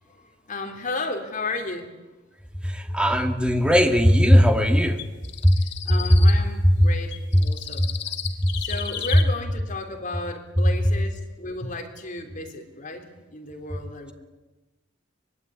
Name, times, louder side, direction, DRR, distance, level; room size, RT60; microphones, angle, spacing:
voice 1, 0.5-1.9 5.9-7.1 7.4-7.9 8.6-14.1, left 3 dB, 45° left, 4 dB, 3.6 m, -33 dB
voice 2, 2.6-5.0 5.4-5.6 5.9-6.0 6.6-6.9 7.3-7.4 7.8-7.9 8.4-8.5, equal, 5° right, 5 dB, 2.3 m, -18 dB
sound 1, 5.0-6.4 7.1-9.2, left 9 dB, 60° left, 2.8 m, -34 dB
24.0 x 22.0 x 9.8 m, 1.1 s
head